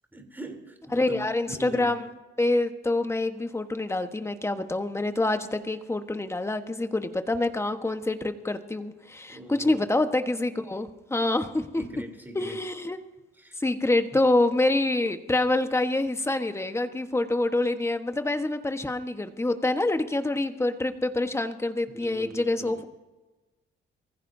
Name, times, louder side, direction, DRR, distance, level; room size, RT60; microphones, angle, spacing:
voice 1, 0.1-2.0 9.3-10.0 11.8-12.6 13.4-13.6 14.1-14.2 21.9-22.8, right 1 dB, 10° right, 3 dB, 3.4 m, -41 dB
voice 2, 0.9-2.0 2.4-11.8 12.3-13.0 13.6-22.9, left 2 dB, 15° left, 7 dB, 1.3 m, -26 dB
23.5 x 15.5 x 2.7 m, 1.2 s
cardioid pair, 90°, 20 cm